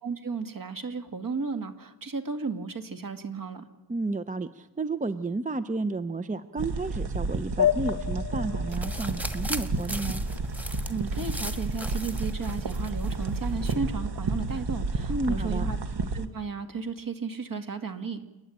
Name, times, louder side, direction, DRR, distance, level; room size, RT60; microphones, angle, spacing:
voice 1, 0.0-3.6 10.9-15.8 16.1-18.3, right 4 dB, 50° right, 6 dB, 2.0 m, -34 dB
voice 2, 3.9-10.2 15.1-15.7, right 3 dB, 20° right, 12 dB, 0.6 m, -32 dB
sound 1, 6.6-16.3, right 3 dB, 75° right, 1.5 m, -31 dB
sound 2, 7.6-10.5, left 10 dB, 40° left, 0.9 m, -30 dB
sound 3, 8.7-13.8, equal, 5° right, 1.4 m, -38 dB
29.5 x 10.5 x 8.7 m, 1.1 s
wide cardioid pair, 90°, 41 cm